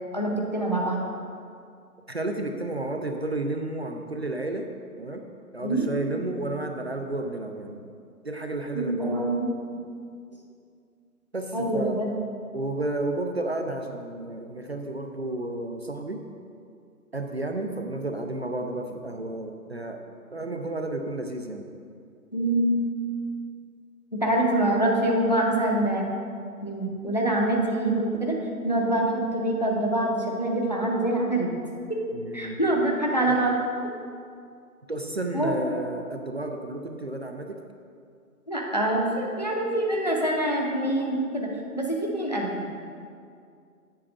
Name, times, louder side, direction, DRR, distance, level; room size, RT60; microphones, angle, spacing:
voice 1, 0.1-1.0 5.6-5.9 8.7-9.5 11.5-12.1 22.3-22.8 24.1-26.1 26.6-28.3 28.6-31.5 32.3-33.6 35.3-35.8 38.5-41.5 41.7-42.6, right 1 dB, 30° left, -1 dB, 0.5 m, -25 dB
voice 2, 2.1-4.7 5.0-5.2 5.5-7.9 8.2-9.3 11.3-12.0 12.5-16.2 17.1-20.0 20.3-21.7 32.1-32.6 33.3-33.4 34.9-37.6, right 2 dB, 45° right, 4 dB, 0.4 m, -32 dB
7.7 x 4.3 x 6.9 m, 2.3 s
hypercardioid pair, 165°, 46 cm